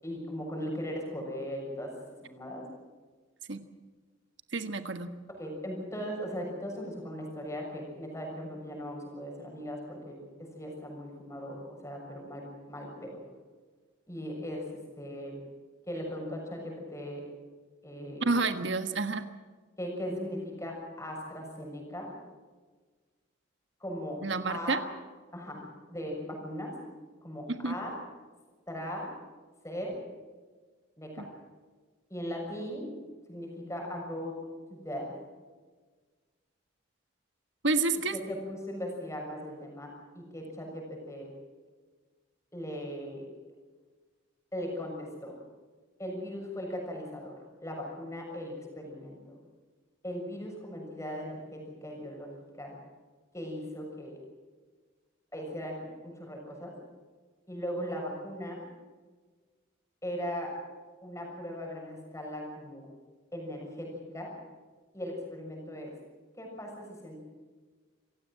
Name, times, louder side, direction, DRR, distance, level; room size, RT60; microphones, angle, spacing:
voice 1, 0.0-1.9 2.2-2.7 5.4-13.2 14.1-14.7 15.0-15.4 15.9-17.2 17.8-18.3 19.8-22.1 23.8-24.2 24.5-24.8 25.3-26.8 27.2-28.0 28.7-29.1 29.6-30.0 31.0-31.3 32.1-32.9 33.3-34.4 34.7-35.2 38.1-41.3 42.5-43.3 44.5-45.4 46.0-49.3 50.0-52.3 52.6-52.7 53.3-54.2 55.3-56.7 57.5-58.6 60.0-60.5 61.0-62.9 63.3-64.3 64.9-65.9 66.4-67.2, equal, 15° left, 0 dB, 6.7 m, -38 dB
voice 2, 4.5-5.1 18.2-19.2 24.2-24.8 27.5-27.8 31.2-31.3 37.6-38.2, right 3 dB, 65° right, 9 dB, 1.5 m, -29 dB
27.0 x 16.5 x 7.6 m, 1.4 s
head